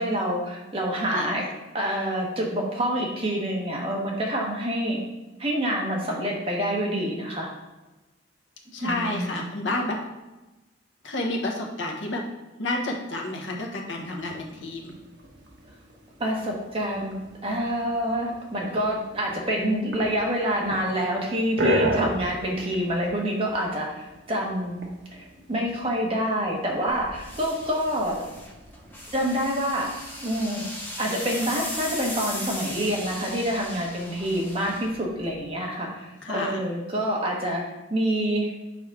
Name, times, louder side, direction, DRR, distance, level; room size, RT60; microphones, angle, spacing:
voice 1, 0.0-1.4 1.7-5.0 5.4-7.5 8.8-9.4 16.2-24.8 25.1-28.2 29.1-29.9 30.2-38.5, equal, 30° right, -2 dB, 1.2 m, -27 dB
voice 2, 1.1-1.5 8.7-10.0 11.0-12.2 12.6-15.0 36.2-36.6, left 1 dB, 75° left, 0 dB, 1.1 m, -30 dB
sound 1, 14.0-29.6, right 1 dB, 65° right, 1.1 m, -35 dB
sound 2, 26.9-35.5, left 1 dB, 10° left, 0.7 m, -38 dB
6.3 x 5.1 x 3.7 m, 1.1 s
head